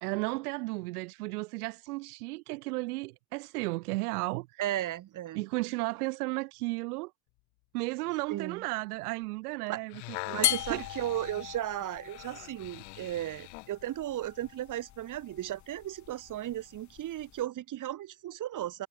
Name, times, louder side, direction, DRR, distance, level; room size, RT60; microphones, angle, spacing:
voice 1, 0.0-4.6 5.3-7.1 7.7-10.2 10.5-10.9, right 23 dB, 85° right, 1.6 m, -34 dB
voice 2, 4.6-5.4 8.3-8.6 9.7-9.8 10.3-18.9, right 13 dB, 45° right, 3.2 m, -35 dB
sound 1, 9.7-13.8 14.4-14.5, left 32 dB, 70° left, 1.8 m, -44 dB
sound 2, 10.4-17.4, left 12 dB, 40° left, 2.4 m, -38 dB
supercardioid pair, 115°, 44 cm